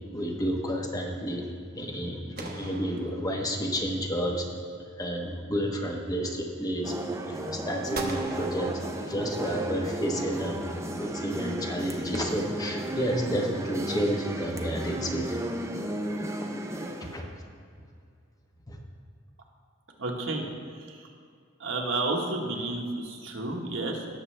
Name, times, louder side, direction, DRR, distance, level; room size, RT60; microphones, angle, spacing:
voice 1, 0.1-1.5 1.7-4.4 5.0-6.9 7.3-8.8 9.1-10.6 10.9-15.4 17.0-17.3 18.7-18.8, equal, 20° left, 1 dB, 1.1 m, -30 dB
sound 1, 2.4-3.8 7.9-9.5, right 3 dB, 50° right, 1.1 m, -41 dB
sound 2, 6.8-17.2, right 1 dB, 15° right, 0.6 m, -34 dB
voice 2, 20.0-21.1 21.6-24.1, right 2 dB, 70° right, 0 dB, 1.4 m, -31 dB
18.0 x 6.9 x 3.3 m, 2.2 s
head